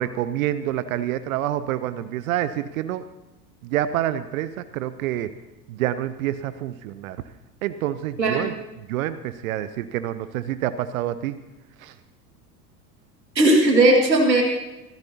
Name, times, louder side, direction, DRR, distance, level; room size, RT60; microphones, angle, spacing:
voice 1, 0.0-3.0 3.6-5.3 5.7-7.2 7.6-8.5 8.9-11.4 11.8-11.9, right 12 dB, 55° right, 13 dB, 0.8 m, -27 dB
voice 2, 8.2-8.5 13.4-14.4, right 1 dB, 80° right, 1 dB, 2.1 m, -17 dB
23.0 x 15.0 x 2.8 m, 1.0 s
figure-of-eight pair, 80°, 49 cm